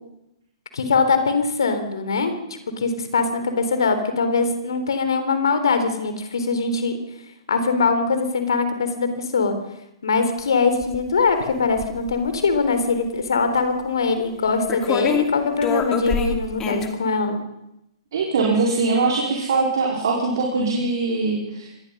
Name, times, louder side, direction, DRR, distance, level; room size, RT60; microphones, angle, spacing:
voice 1, 0.7-2.3 2.8-7.0 7.5-9.5 10.0-17.4, left 4 dB, 65° left, 9 dB, 3.7 m, -22 dB
sound 1, 10.8-11.0 11.3-12.4 13.6-13.7 14.7-15.3 15.6-16.9, left 6 dB, 20° left, 2.4 m, -25 dB
voice 2, 18.1-21.8, right 3 dB, 60° right, -2 dB, 4.7 m, -22 dB
25.0 x 19.5 x 5.6 m, 0.85 s
figure-of-eight pair, 115°, 3 cm